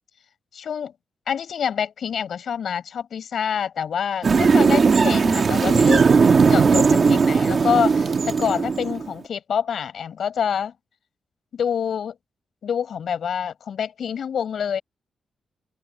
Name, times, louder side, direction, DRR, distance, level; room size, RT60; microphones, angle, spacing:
voice 1, 0.5-0.9 1.3-6.1 6.5-10.7 11.5-12.1 12.6-14.8, left 8 dB, 70° left, 6.5 m, -26 dB
sound 1, 4.2-9.1, right 5 dB, 50° right, 1.6 m, -17 dB
open air
cardioid pair, 85°, 0 cm